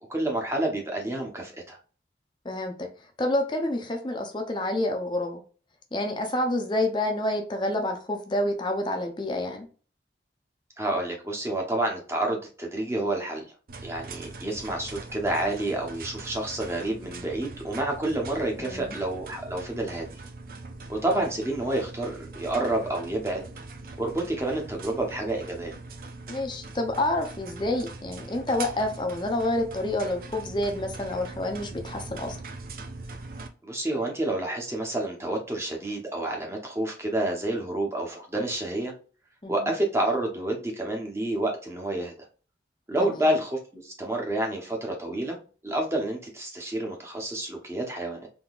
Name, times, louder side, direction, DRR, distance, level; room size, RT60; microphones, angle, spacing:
voice 1, 0.1-1.8 10.8-13.4 13.8-20.0 20.9-23.4 24.0-25.7 33.6-38.9 39.5-42.1 42.9-45.4 45.6-48.3, right 1 dB, 15° right, 1 dB, 0.8 m, -29 dB
voice 2, 2.4-2.9 3.2-5.4 5.9-9.7 18.6-19.0 26.3-32.4 39.4-39.7 43.0-43.3, left 1 dB, 25° left, 4 dB, 0.5 m, -28 dB
sound 1, 13.7-33.5, right 3 dB, 55° right, 0.5 m, -42 dB
3.7 x 2.8 x 2.3 m, 0.38 s
head